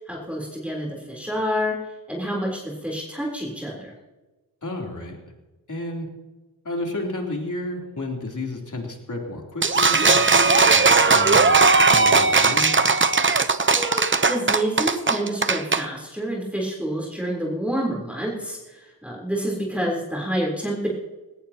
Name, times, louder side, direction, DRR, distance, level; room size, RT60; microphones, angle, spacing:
voice 1, 0.0-1.7 2.1-3.9 13.7-14.0 14.3-20.9, equal, 5° right, -3 dB, 3.8 m, -28 dB
voice 2, 4.6-5.2 5.7-6.1 6.6-11.6 11.9-12.7, left 2 dB, 45° left, 0 dB, 3.6 m, -31 dB
sound 1, 9.6-15.8, right 4 dB, 30° right, 0.9 m, -18 dB
19.0 x 17.5 x 3.0 m, 1.1 s
wide cardioid pair, 80°, 40 cm